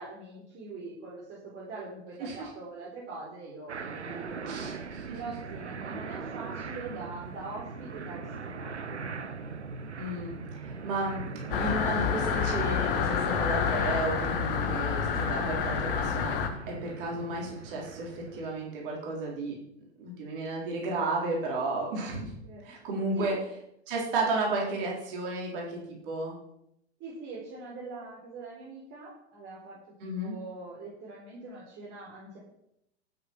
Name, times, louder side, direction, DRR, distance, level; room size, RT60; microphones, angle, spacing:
voice 1, 0.0-4.6 5.1-9.2 22.4-22.8 23.1-23.4 27.0-32.4, right 3 dB, 35° right, -5 dB, 4.4 m, -43 dB
sound 1, 3.7-18.5, right 5 dB, 75° right, 1.0 m, -40 dB
voice 2, 4.5-5.2 10.0-10.4 10.8-11.3 11.6-19.5 20.0-22.4 22.6-23.4 23.9-26.3 30.0-30.4, right 2 dB, 50° right, -2 dB, 4.1 m, -33 dB
sound 2, 11.5-16.5, left 7 dB, 55° left, 1.8 m, -28 dB
12.5 x 8.3 x 6.1 m, 0.79 s
figure-of-eight pair, 90°, 34 cm